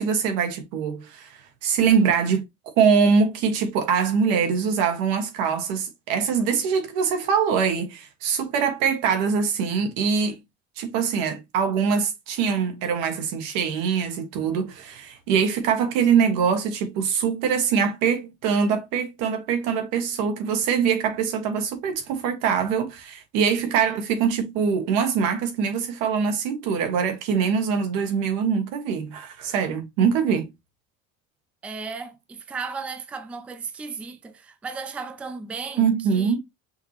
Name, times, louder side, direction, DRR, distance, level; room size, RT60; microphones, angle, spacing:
voice 1, 0.0-2.4 2.8-10.4 10.8-30.5 35.8-36.4, right 6 dB, 90° right, 1.6 m, -23 dB
voice 2, 31.6-36.4, right 4 dB, 5° right, 0.3 m, -35 dB
5.6 x 2.9 x 2.9 m
cardioid pair, 170°, 29 cm